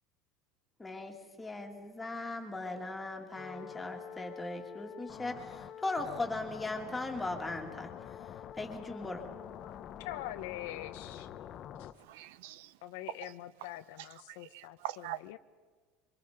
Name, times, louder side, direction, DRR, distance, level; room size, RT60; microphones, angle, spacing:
voice 1, 0.8-7.9 8.2-8.3 8.5-9.2, left 2 dB, 10° left, 2.3 m, -38 dB
sound 1, 3.4-11.9, left 10 dB, 30° left, 0.8 m, -46 dB
voice 2, 9.6-11.3 11.8-11.9 12.8-14.8 15.3-15.4, left 14 dB, 80° left, 0.8 m, -44 dB
voice 3, 11.9-12.8 13.2-13.3 14.0-15.2, right 14 dB, 75° right, 0.7 m, -44 dB
26.5 x 24.5 x 5.1 m
cardioid pair, 175°, 0 cm